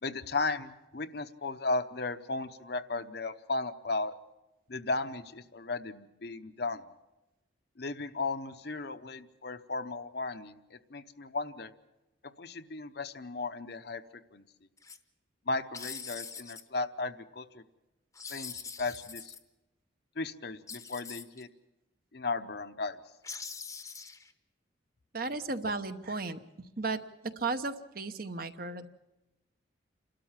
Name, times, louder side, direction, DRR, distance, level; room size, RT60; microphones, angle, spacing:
voice 1, 0.0-4.1 4.7-6.8 7.8-11.7 12.4-14.0 14.3-14.4 15.5-17.6 18.3-19.3 20.2-21.5 22.1-23.0, left 3 dB, 55° left, 9 dB, 0.8 m, -35 dB
sound 1, 14.8-15.0 15.7-16.6 18.1-19.4 20.7-21.4 23.2-24.3, left 5 dB, 15° left, 0.9 m, -43 dB
voice 2, 25.1-26.4 26.8-27.0 27.4-28.9, right 3 dB, 50° right, 9 dB, 1.0 m, -34 dB
28.5 x 13.0 x 7.4 m, 1.0 s
head